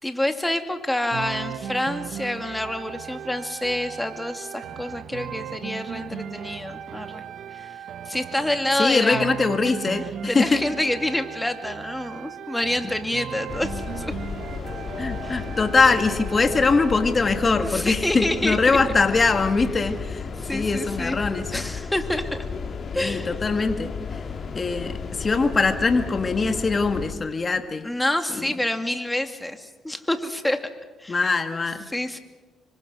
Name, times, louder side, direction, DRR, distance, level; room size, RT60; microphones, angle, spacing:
voice 1, 0.0-7.2 7.5-9.3 9.6-9.7 10.3-14.1 15.2-15.4 17.6-18.8 20.4-21.2 21.5-22.4 22.9-23.4 27.8-30.6 31.0-31.2 31.9-32.2, left 1 dB, 10° left, 6 dB, 2.4 m, -27 dB
sound 1, 1.1-17.1, right 9 dB, 65° right, 1.2 m, -37 dB
voice 2, 8.8-10.0 10.3-10.6 15.0-20.2 20.5-21.6 22.9-23.9 24.5-27.9 28.4-28.5 31.1-31.8, left 4 dB, 35° left, 7 dB, 1.8 m, -22 dB
sound 2, 13.5-27.1, left 5 dB, 50° left, 2.7 m, -33 dB
26.0 x 24.5 x 6.3 m, 1.2 s
cardioid pair, 90°, 0 cm